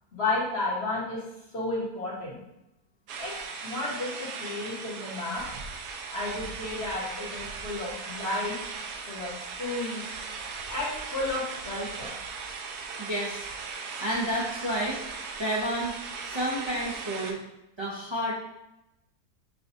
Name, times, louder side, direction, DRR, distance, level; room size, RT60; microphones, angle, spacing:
voice 1, 0.1-1.2 1.5-2.4 3.2-3.3 3.6-4.1 4.4-5.4 6.1-8.6 9.1-9.3 9.6-10.0 10.7-12.1, left 2 dB, 45° left, -7 dB, 1.3 m, -32 dB
sound 1, 3.1-17.3, right 5 dB, 85° right, 1.2 m, -38 dB
voice 2, 13.0-13.5 14.0-15.0 15.4-15.9 16.2-17.4 17.8-18.3, equal, 30° right, -8 dB, 0.5 m, -30 dB
6.0 x 2.4 x 2.6 m, 0.88 s
omnidirectional pair, 1.7 m